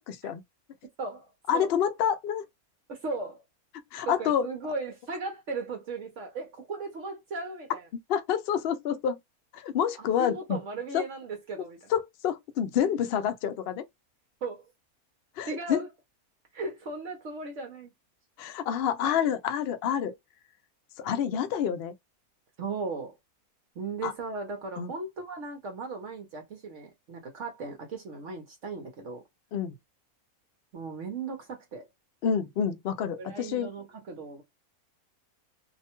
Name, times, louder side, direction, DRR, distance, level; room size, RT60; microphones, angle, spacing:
voice 1, 0.1-0.4 1.5-2.4 3.9-4.5 8.1-9.2 9.5-10.6 10.9-11.0 11.9-13.8 15.4-15.8 18.4-20.1 21.0-21.9 24.0-24.1 24.8-24.9 29.5-29.7 32.2-33.7, left 8 dB, 75° left, 0.5 m, -28 dB
voice 2, 1.0-1.7 2.9-3.4 4.1-7.9 9.8-11.9 14.4-14.7 15.5-15.9 16.5-17.9 22.6-23.2 23.8-29.2 30.7-31.9 33.2-34.4, right 3 dB, 60° right, 1.0 m, -37 dB
2.7 x 2.1 x 2.9 m
omnidirectional pair, 1.6 m